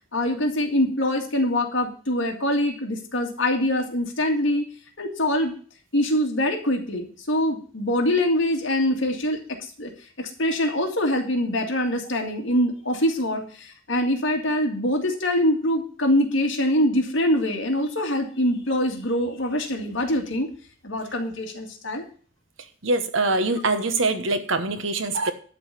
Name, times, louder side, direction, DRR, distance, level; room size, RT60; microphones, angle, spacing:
voice 1, 0.1-4.6 5.0-5.5 5.9-9.4 9.8-9.9 10.2-20.5 20.8-22.0, left 1 dB, 60° left, 2 dB, 2.1 m, -24 dB
voice 2, 22.8-25.3, right 2 dB, 70° right, 9 dB, 1.2 m, -23 dB
12.0 x 4.0 x 8.0 m, 0.44 s
head